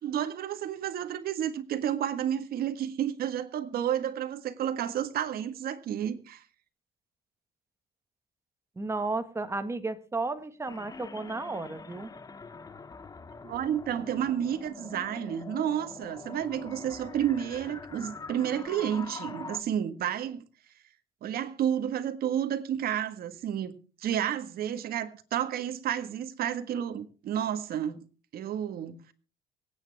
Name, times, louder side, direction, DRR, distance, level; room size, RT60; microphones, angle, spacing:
voice 1, 0.0-6.4 13.4-20.4 21.2-23.7 24.0-28.0 28.3-29.1, right 10 dB, 65° right, 1.6 m, -31 dB
voice 2, 8.8-12.1, right 3 dB, 15° right, 1.5 m, -33 dB
sound 1, 10.7-19.6, left 4 dB, 20° left, 0.8 m, -44 dB
24.0 x 9.3 x 3.5 m
cardioid pair, 110°, 17 cm